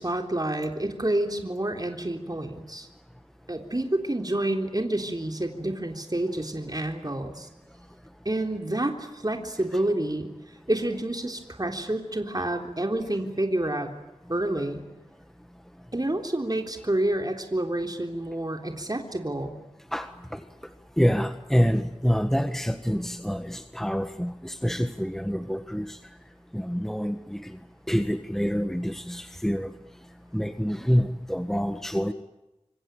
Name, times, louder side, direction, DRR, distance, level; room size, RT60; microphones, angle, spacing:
voice 1, 0.0-2.9 3.5-7.5 8.3-13.9 14.3-14.8 15.9-19.5, right 1 dB, 35° right, 4 dB, 3.6 m, -28 dB
voice 2, 19.9-20.4 21.0-26.0 26.5-27.6 27.9-29.7 30.3-32.1, equal, 5° left, 8 dB, 1.6 m, -27 dB
26.5 x 24.5 x 9.0 m, 0.97 s
wide cardioid pair, 45°, 11 cm